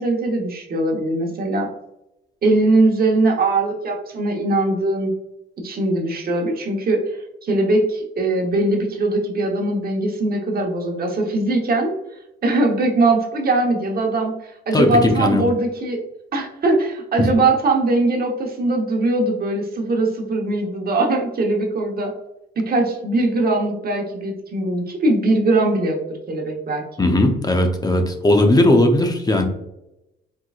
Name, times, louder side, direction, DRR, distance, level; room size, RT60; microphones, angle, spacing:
voice 1, 0.0-1.7 2.4-5.1 5.6-7.0 7.4-11.9 12.4-16.0 16.3-22.1 22.6-27.1, right 2 dB, 50° right, 1 dB, 1.1 m, -21 dB
voice 2, 14.7-15.5 17.2-17.3 27.0-29.4, left 1 dB, 20° left, 5 dB, 0.8 m, -17 dB
4.6 x 3.7 x 2.4 m, 0.89 s
cardioid pair, 90°, 20 cm